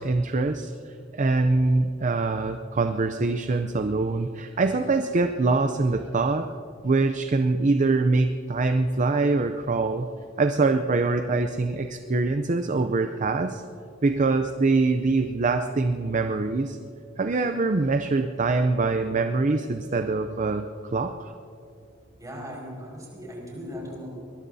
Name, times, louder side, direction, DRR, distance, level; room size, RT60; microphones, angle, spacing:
voice 1, 0.0-6.5 6.8-10.1 10.4-13.6 14.0-16.8 17.2-20.6 20.9-21.3, right 3 dB, 40° right, 7 dB, 0.5 m, -24 dB
voice 2, 22.2-24.1, equal, 20° right, -3 dB, 5.2 m, -38 dB
23.0 x 20.5 x 2.8 m, 2.4 s
head